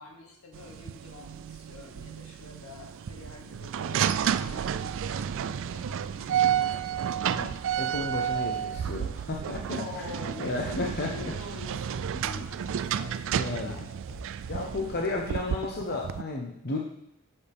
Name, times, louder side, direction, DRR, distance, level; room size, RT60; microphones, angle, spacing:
voice 1, 0.0-7.2 9.8-13.9, left 3 dB, 85° left, 0 dB, 2.1 m, -46 dB
sound 1, 0.5-16.2, right 9 dB, 60° right, 0.3 m, -31 dB
sound 2, 6.3-10.2 10.4-14.8, left 1 dB, 20° left, 3.4 m, -51 dB
voice 2, 7.3-9.8 10.4-11.1 12.4-12.5 13.3-13.7 14.5-16.8, left 2 dB, 50° left, 0 dB, 1.0 m, -33 dB
12.0 x 7.1 x 3.6 m, 0.78 s
head